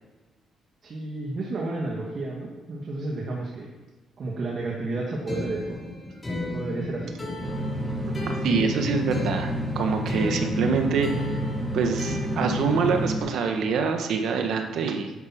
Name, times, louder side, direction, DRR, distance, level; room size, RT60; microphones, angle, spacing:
voice 1, 0.8-3.7 4.2-5.8 6.3-7.1, right 2 dB, 50° right, -2 dB, 2.2 m, -31 dB
sound 1, 5.3-12.9, left 2 dB, 20° left, 3.9 m, -35 dB
sound 2, 7.4-13.2, equal, 25° right, 2.1 m, -29 dB
voice 2, 8.4-11.3 11.7-15.1, right 5 dB, 75° right, 5 dB, 1.6 m, -25 dB
10.5 x 8.6 x 6.1 m, 1.2 s
cardioid pair, 90°, 0 cm